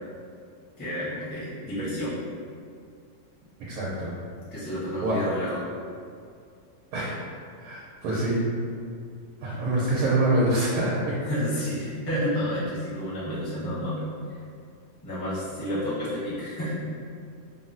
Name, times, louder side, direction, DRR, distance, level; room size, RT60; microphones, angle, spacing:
voice 1, 0.8-2.2 4.5-5.6 11.2-14.0 15.0-16.7, equal, 30° left, -11 dB, 0.4 m, -30 dB
voice 2, 3.6-4.1 5.0-5.2 6.9-7.1 7.6-8.4 9.4-11.1, right 2 dB, 85° right, -7 dB, 1.4 m, -25 dB
3.6 x 2.0 x 2.5 m, 2.3 s
omnidirectional pair, 2.2 m